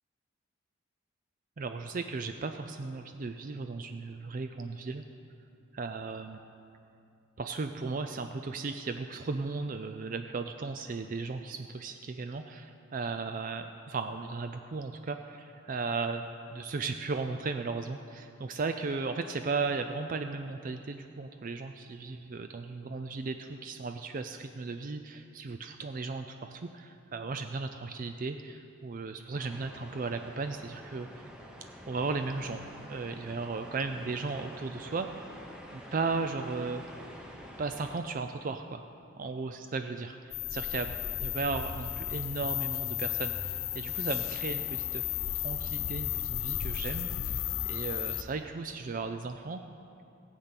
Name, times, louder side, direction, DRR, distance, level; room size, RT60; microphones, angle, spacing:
voice 1, 1.6-5.0 5.8-6.4 7.4-31.2 31.9-32.6 32.9-35.1 35.7-36.8 37.6-38.8 39.2-40.9 41.2-45.2 45.4-49.6, right 4 dB, 40° right, 7 dB, 0.4 m, -36 dB
sound 1, 29.3-38.0, equal, 5° right, 1.0 m, -48 dB
sound 2, 40.3-48.2, left 11 dB, 85° left, 0.5 m, -34 dB
15.0 x 8.2 x 5.9 m, 2.6 s
head